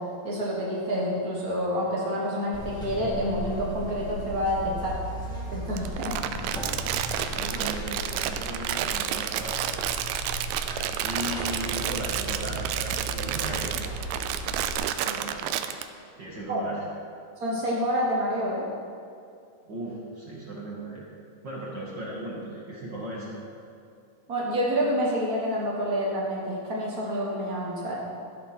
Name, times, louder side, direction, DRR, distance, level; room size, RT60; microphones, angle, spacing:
voice 1, 0.2-5.0 5.5-6.1 16.5-16.6 17.4-18.7 24.3-28.0, equal, 70° right, -4 dB, 0.8 m, -28 dB
Buzz, 2.5-14.7, right 1 dB, 5° left, 0.5 m, -36 dB
Crumpling crinkling, 5.8-15.8, right 11 dB, 85° right, 2.5 m, -30 dB
voice 2, 6.8-10.0 11.0-13.8 15.0-15.5 16.2-16.8 19.7-21.1 21.4-23.4, right 1 dB, 55° right, -4 dB, 1.2 m, -37 dB
14.5 x 11.0 x 4.3 m, 2.5 s
omnidirectional pair, 4.3 m